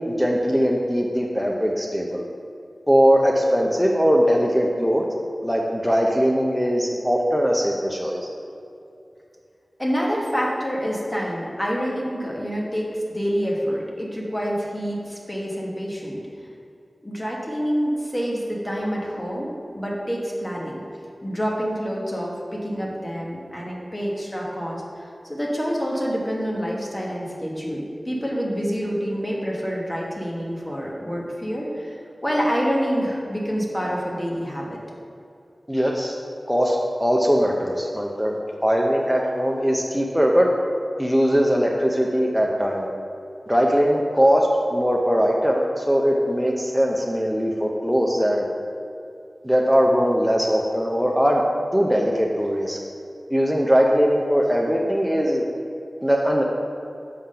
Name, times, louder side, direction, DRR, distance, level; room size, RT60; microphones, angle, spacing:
voice 1, 0.0-2.2 2.9-5.0 5.4-8.3 35.7-36.2 36.5-40.5 41.0-42.9 43.5-48.5 49.4-51.4 51.7-52.8 53.3-55.4 56.0-56.4, equal, ahead, -1 dB, 0.6 m, -20 dB
voice 2, 9.8-16.2 17.0-20.8 21.2-34.8, equal, 15° left, -3 dB, 1.3 m, -27 dB
7.3 x 3.8 x 5.4 m, 2.6 s
wide cardioid pair, 80°, 0 cm